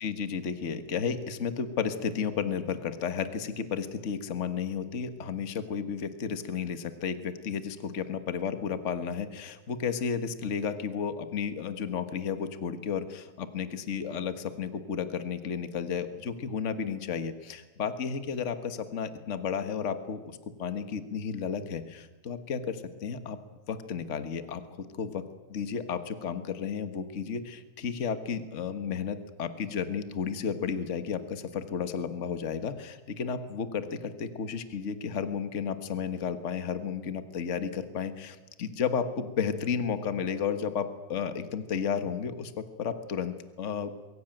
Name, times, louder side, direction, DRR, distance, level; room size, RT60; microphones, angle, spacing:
voice 1, 0.0-23.4 23.7-24.6 24.9-25.2 25.5-43.9, left 6 dB, 40° left, 9 dB, 1.6 m, -33 dB
23.0 x 16.0 x 9.0 m, 1.2 s
omnidirectional pair, 2.3 m